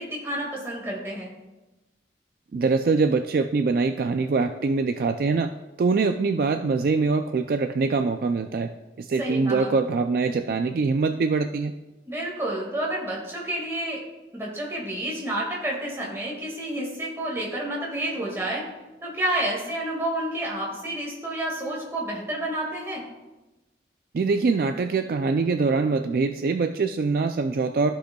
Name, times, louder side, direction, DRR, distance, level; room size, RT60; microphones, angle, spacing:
voice 1, 0.0-1.3 9.2-9.7 12.1-14.0 14.3-18.7 19.0-23.0, right 1 dB, 15° right, -4 dB, 1.9 m, -30 dB
voice 2, 2.5-5.5 5.8-8.7 9.0-11.7 24.1-27.9, right 4 dB, 55° right, 7 dB, 0.3 m, -23 dB
14.5 x 5.1 x 2.3 m, 1.1 s
head